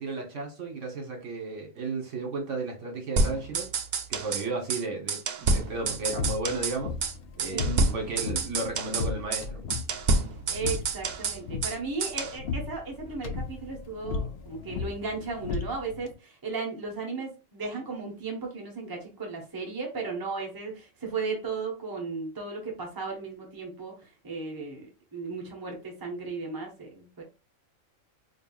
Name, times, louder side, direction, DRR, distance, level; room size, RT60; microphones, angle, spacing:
voice 1, 0.0-3.7 4.1-7.0 7.4-9.6, right 3 dB, 65° right, 1.4 m, -34 dB
sound 1, 3.2-4.4 4.7-4.8 5.1-6.8 7.0-7.1 7.4-9.1 9.3-9.4 9.7-11.8 12.0-12.4, right 3 dB, 85° right, 0.4 m, -28 dB
sound 2, 5.6-16.1, left 4 dB, 60° left, 0.6 m, -36 dB
voice 2, 7.4-7.9 10.5-24.9 25.1-27.2, right 4 dB, 20° right, 0.9 m, -35 dB
4.6 x 2.7 x 2.3 m
omnidirectional pair, 1.4 m